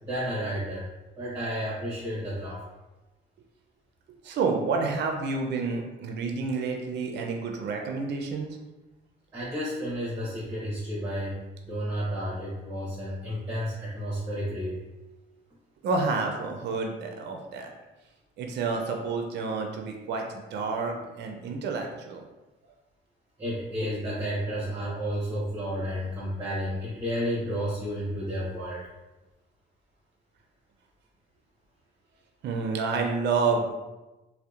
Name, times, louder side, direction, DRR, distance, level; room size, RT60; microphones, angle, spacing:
voice 1, 0.0-0.9 1.2-2.6 9.3-11.4 11.6-14.8 23.4-28.9, equal, 20° right, -7 dB, 0.7 m, -31 dB
voice 2, 4.2-8.6 15.8-17.7 18.4-22.2 32.4-33.7, right 4 dB, 60° right, 2 dB, 0.4 m, -29 dB
2.7 x 2.0 x 2.3 m, 1.1 s
cardioid pair, 90°, 20 cm